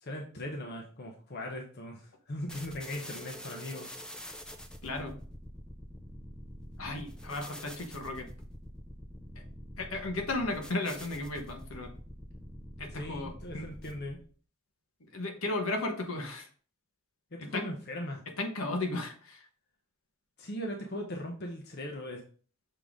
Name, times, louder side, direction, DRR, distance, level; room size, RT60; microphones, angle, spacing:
voice 1, 0.0-3.9 12.9-14.2 17.3-18.2 20.4-22.2, left 1 dB, 50° left, 1 dB, 0.9 m, -39 dB
sound 1, 2.5-14.3, equal, 5° left, 0.6 m, -46 dB
voice 2, 4.8-5.2 6.8-8.3 9.8-11.9 12.8-13.7 15.1-16.5 17.4-17.7 18.4-19.5, left 2 dB, 75° left, 2 dB, 1.3 m, -35 dB
6.7 x 3.8 x 3.6 m, 0.43 s
head